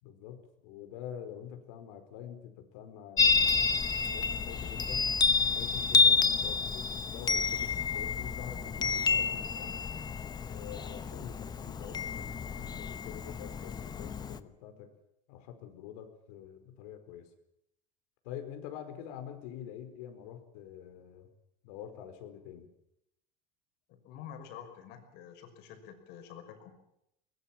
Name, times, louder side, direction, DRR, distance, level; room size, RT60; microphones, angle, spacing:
voice 1, 0.0-5.2 5.5-9.7 10.4-14.9 15.3-17.3 18.2-21.3 21.6-22.7, left 9 dB, 85° left, 6 dB, 4.9 m, -46 dB
Chime, 3.2-14.4, left 5 dB, 20° left, 1.0 m, -29 dB
voice 2, 23.9-26.7, left 9 dB, 60° left, 6 dB, 5.7 m, -48 dB
22.5 x 21.0 x 7.4 m, 0.79 s
cardioid pair, 150°, 19 cm